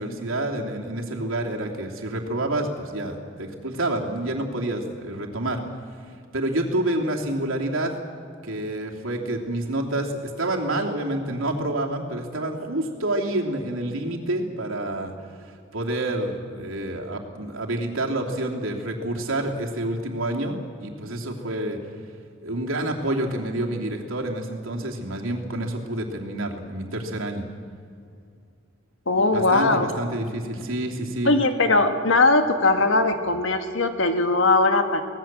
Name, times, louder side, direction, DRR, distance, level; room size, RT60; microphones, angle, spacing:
voice 1, 0.0-5.6 6.3-7.9 8.4-15.1 15.7-21.8 22.4-27.4 29.3-31.3, right 1 dB, 80° right, 0 dB, 2.9 m, -28 dB
voice 2, 29.1-29.9 31.3-35.0, left 3 dB, 65° left, 7 dB, 1.8 m, -20 dB
24.5 x 18.0 x 7.5 m, 2.3 s
head